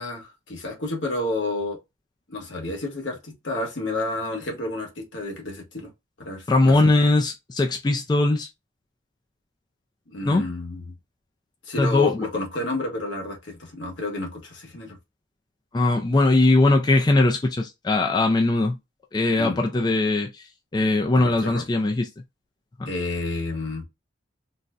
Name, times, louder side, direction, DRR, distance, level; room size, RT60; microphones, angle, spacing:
voice 1, 0.0-1.8 2.3-5.9 6.2-6.9 10.1-10.8 11.6-15.0 19.4-19.6 21.1-21.6 22.9-23.8, left 2 dB, 75° left, 1.1 m, -30 dB
voice 2, 6.5-8.5 10.2-10.4 11.8-12.3 15.7-18.8 19.1-20.4 20.7-22.1 22.8-22.9, left 2 dB, 20° left, 0.3 m, -20 dB
3.9 x 2.1 x 2.4 m
head